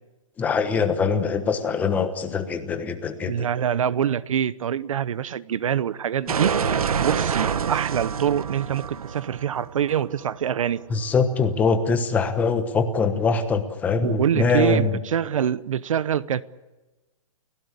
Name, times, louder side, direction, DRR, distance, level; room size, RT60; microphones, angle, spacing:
voice 1, 0.4-3.5 10.9-14.9, left 5 dB, 10° left, 1.1 m, -23 dB
voice 2, 3.2-6.5 7.0-10.8 14.0-16.4, right 9 dB, 65° right, 0.9 m, -25 dB
sound 1, 6.3-11.0, right 7 dB, 90° right, 1.5 m, -27 dB
29.5 x 16.5 x 8.3 m
hypercardioid pair, 170°, 18 cm